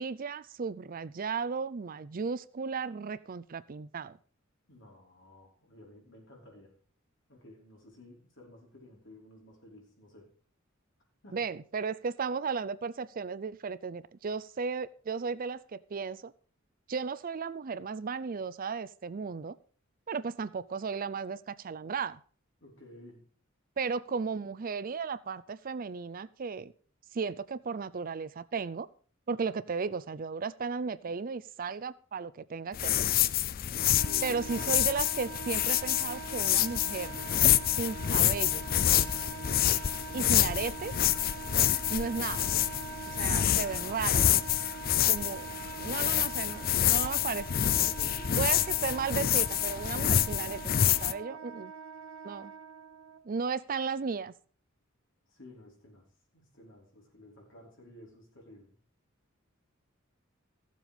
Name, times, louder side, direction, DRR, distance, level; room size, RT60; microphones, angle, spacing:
voice 1, 0.0-4.2 11.3-16.3 16.9-19.6 20.1-22.2 23.8-26.7 27.1-28.9 29.3-33.0 34.2-37.1 37.8-38.7 40.1-40.9 41.9-42.5 43.1-44.3 45.1-45.5 45.8-47.5 48.4-51.7 52.2-52.5 53.2-54.3, right 5 dB, 45° right, 17 dB, 0.5 m, -35 dB
voice 2, 4.7-6.7 7.3-10.3 11.2-11.4 22.6-23.2 33.9-34.5 47.9-48.5 55.3-56.0 56.3-58.7, left 1 dB, 65° left, -1 dB, 4.9 m, -53 dB
sound 1, 32.7-51.1, left 11 dB, 45° left, 0.4 m, -27 dB
Wind instrument woodwind instrument, 33.7-53.2, right 5 dB, 90° right, 1.3 m, -43 dB
14.5 x 7.5 x 5.2 m, 0.43 s
head